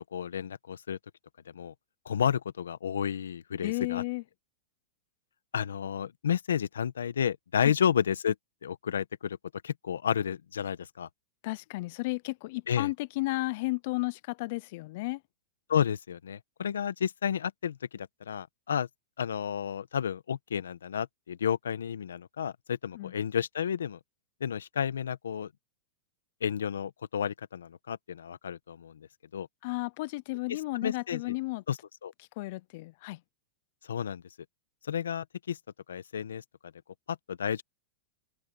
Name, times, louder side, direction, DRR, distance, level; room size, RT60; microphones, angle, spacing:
voice 1, 0.1-1.0 1.5-1.7 2.0-4.0 5.5-8.3 8.6-9.4 9.6-11.1 12.7-12.9 15.7-18.9 19.2-24.0 24.4-25.5 26.4-29.1 29.3-29.5 30.5-31.4 31.7-32.1 33.9-34.2 34.9-35.6 35.9-36.4 37.1-37.6, left 8 dB, 85° left, 1.3 m, -31 dB
voice 2, 3.6-4.2 7.6-7.7 11.4-15.2 22.9-23.1 29.6-31.6 32.4-33.2, left 22 dB, 60° left, 0.5 m, -33 dB
open air
hypercardioid pair, 115°, 0 cm